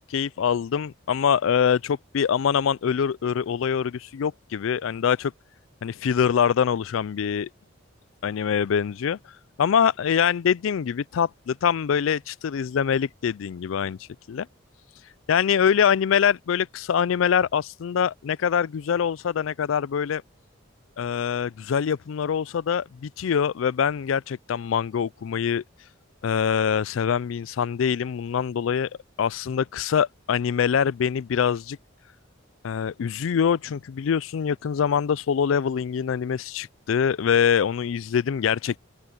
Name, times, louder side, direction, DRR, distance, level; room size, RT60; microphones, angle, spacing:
voice 1, 0.1-5.3 5.8-7.5 8.2-9.2 9.6-14.0 14.3-14.5 15.3-20.2 21.0-25.6 26.2-28.9 29.2-31.8 32.6-38.8, left 7 dB, 80° left, 0.4 m, -24 dB
open air
head